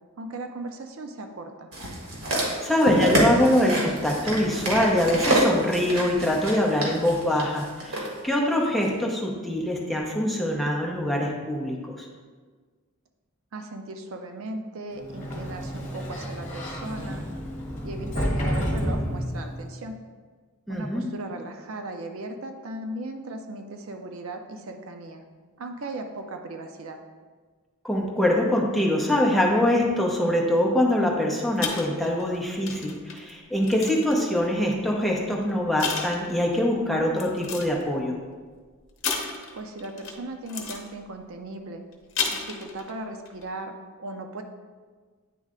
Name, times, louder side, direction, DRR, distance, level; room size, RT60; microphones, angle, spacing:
voice 1, 0.2-1.7 13.5-17.2 17.8-19.9 20.7-25.2 25.6-27.0 39.5-41.8 42.3-43.7 44.0-44.4, right 2 dB, 65° right, 5 dB, 0.5 m, -37 dB
sound 1, 1.7-8.1 8.8-8.9, right 1 dB, 85° right, 1.6 m, -26 dB
voice 2, 2.6-12.1 20.7-21.0 27.8-38.2, left 1 dB, ahead, -2 dB, 0.7 m, -24 dB
Sliding door, 15.0-19.7, equal, 30° left, 1.3 m, -30 dB
sound 2, 31.6-34.4 35.2-35.4 35.8-36.6 37.2-37.8 39.0-40.2 40.5-40.9 41.9-42.9 43.3-43.4, left 5 dB, 60° left, 0.8 m, -33 dB
9.2 x 3.2 x 3.7 m, 1.5 s
head